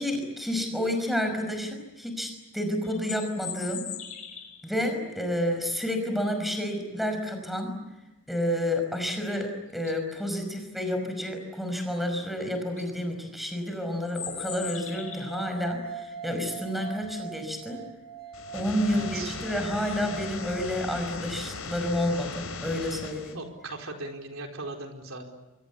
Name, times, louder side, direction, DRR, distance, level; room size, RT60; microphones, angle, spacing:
voice 1, 0.0-3.9 4.6-7.7 8.3-17.9 18.5-23.4, left 1 dB, ahead, 5 dB, 5.5 m, -30 dB
sound 1, 2.8-4.7 9.2-9.3 9.7-10.1 12.2-12.3 12.6-12.9 14.0-15.4, left 9 dB, 35° left, 5.6 m, -39 dB
sound 2, 14.3-21.4, right 6 dB, 45° right, 1.7 m, -42 dB
sound 3, 18.3-23.3, left 3 dB, 75° left, 5.5 m, -38 dB
voice 2, 18.9-19.4 22.1-22.2 23.3-25.3, right 2 dB, 65° right, 3 dB, 4.7 m, -39 dB
28.0 x 24.0 x 8.4 m, 1.0 s
head